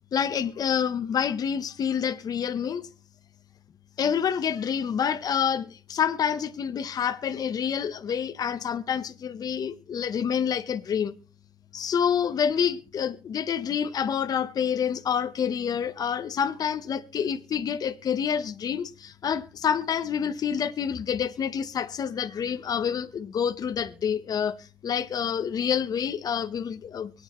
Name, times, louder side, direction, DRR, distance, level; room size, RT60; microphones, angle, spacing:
voice 1, 0.1-2.9 4.0-11.1 11.7-27.1, left 8 dB, 55° left, 0.8 m, -28 dB
23.5 x 8.7 x 3.0 m
cardioid pair, 85°, 8 cm